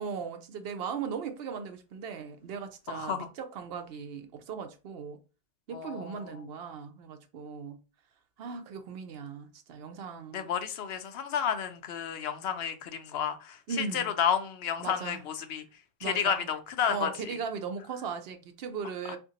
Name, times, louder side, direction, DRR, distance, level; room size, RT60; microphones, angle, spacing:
voice 1, 0.0-5.2 5.7-7.8 8.4-10.5 13.7-14.1 14.8-15.2 16.0-16.5 16.9-19.2, right 6 dB, 75° right, 0.8 m, -38 dB
voice 2, 2.9-3.3 5.7-6.4 10.3-15.6 16.0-17.1, left 8 dB, 80° left, 0.8 m, -31 dB
3.7 x 2.5 x 2.7 m
omnidirectional pair, 1.0 m